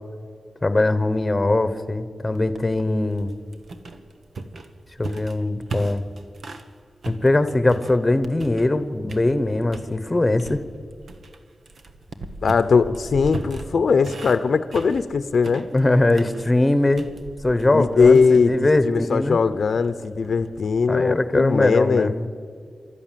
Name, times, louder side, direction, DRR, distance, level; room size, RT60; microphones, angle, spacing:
voice 1, 0.6-3.3 5.0-6.0 7.1-10.6 15.7-17.1 17.4-19.4 20.9-22.3, left 2 dB, 20° left, 12 dB, 1.1 m, -21 dB
sound 1, 2.3-6.7 7.0-8.8 9.1-9.9 10.4-20.9, right 3 dB, 65° right, 1.3 m, -38 dB
voice 2, 12.4-15.7 17.7-22.1, left 5 dB, 70° left, 13 dB, 0.8 m, -20 dB
28.5 x 13.0 x 7.6 m, 2.1 s
wide cardioid pair, 140°, 0 cm